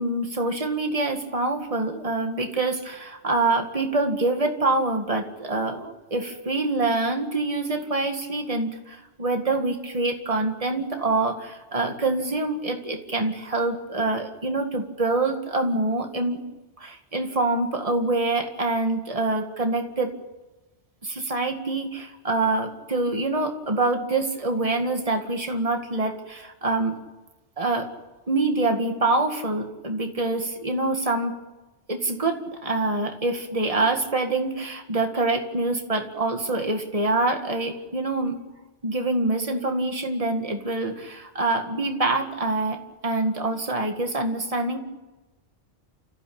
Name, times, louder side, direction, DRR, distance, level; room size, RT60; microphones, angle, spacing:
voice 1, 0.0-16.4 16.8-20.1 21.0-27.0 27.6-27.9 28.3-31.3 31.9-38.4 38.8-44.8, right 2 dB, 30° right, 4 dB, 2.1 m, -25 dB
29.5 x 14.5 x 8.7 m, 1.1 s
omnidirectional pair, 1.2 m